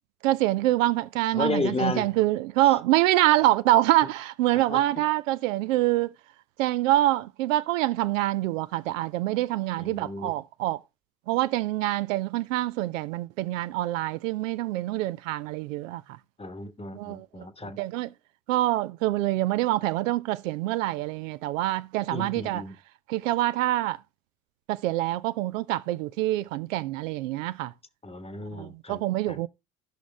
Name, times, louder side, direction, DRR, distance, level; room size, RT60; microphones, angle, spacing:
voice 1, 0.2-6.1 6.6-10.8 11.3-16.0 16.9-17.5 17.8-18.1 18.5-22.6 23.1-24.0 24.7-27.7 28.5-29.5, right 16 dB, 70° right, 0.6 m, -25 dB
voice 2, 1.3-2.1 2.6-2.8 4.5-4.9 9.8-10.3 16.4-17.8 22.1-22.7 28.0-29.4, left 3 dB, 15° left, 1.2 m, -33 dB
14.5 x 6.1 x 3.5 m
figure-of-eight pair, 60°, 41 cm